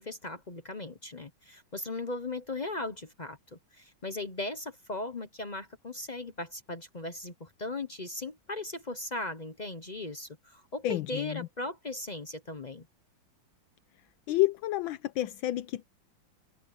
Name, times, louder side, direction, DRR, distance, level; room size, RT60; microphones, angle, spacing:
voice 1, 0.0-12.9, left 2 dB, 35° left, 0.7 m, -38 dB
voice 2, 10.8-11.5 14.3-15.9, left 16 dB, 80° left, 1.4 m, -29 dB
omnidirectional pair, 2.2 m